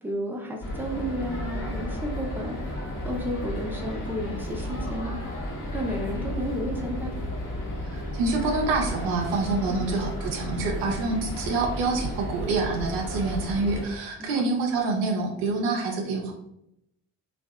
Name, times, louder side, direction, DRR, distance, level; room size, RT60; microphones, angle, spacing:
voice 1, 0.0-2.8 3.0-5.2 5.7-7.1 9.7-9.9 14.2-14.4, equal, 5° right, 0 dB, 0.6 m, -32 dB
sound 1, 0.6-13.8, left 1 dB, 50° left, 0.9 m, -33 dB
voice 2, 7.9-16.3, right 3 dB, 85° right, 2 dB, 0.6 m, -27 dB
2.6 x 2.3 x 2.3 m, 0.80 s
hypercardioid pair, 45°, 41 cm